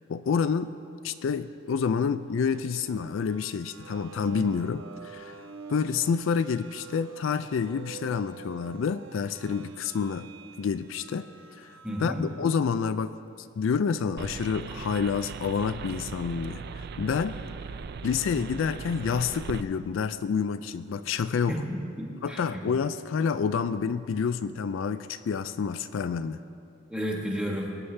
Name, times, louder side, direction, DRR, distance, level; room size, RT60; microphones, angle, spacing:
voice 1, 0.1-0.8 1.0-5.4 5.7-10.3 10.6-11.3 11.6-17.4 18.0-21.5 22.2-26.4, left 6 dB, 70° left, 12 dB, 0.3 m, -28 dB
Robot Love Scream, 2.4-12.7, right 6 dB, 75° right, 0.9 m, -47 dB
voice 2, 11.8-12.2 21.5-22.6 26.9-27.7, equal, 5° right, -1 dB, 1.4 m, -32 dB
sound 1, 14.2-19.6, right 5 dB, 50° right, 0.4 m, -39 dB
20.0 x 9.5 x 3.3 m, 2.6 s
head